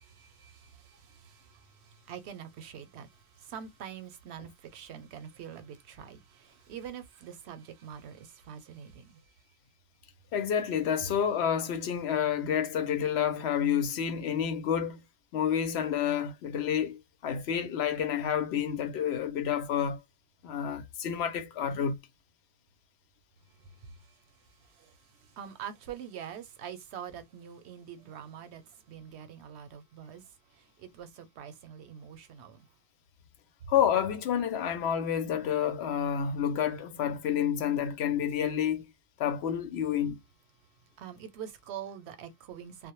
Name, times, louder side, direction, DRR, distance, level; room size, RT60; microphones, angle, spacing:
voice 1, 0.0-9.2 23.8-24.1 24.6-32.6 41.0-42.9, right 8 dB, 85° right, 0.9 m, -45 dB
voice 2, 10.3-15.0 15.3-20.0 20.4-22.0 33.7-38.9 39.2-40.2, left 8 dB, 85° left, 0.9 m, -29 dB
2.1 x 2.0 x 3.0 m
omnidirectional pair, 1.1 m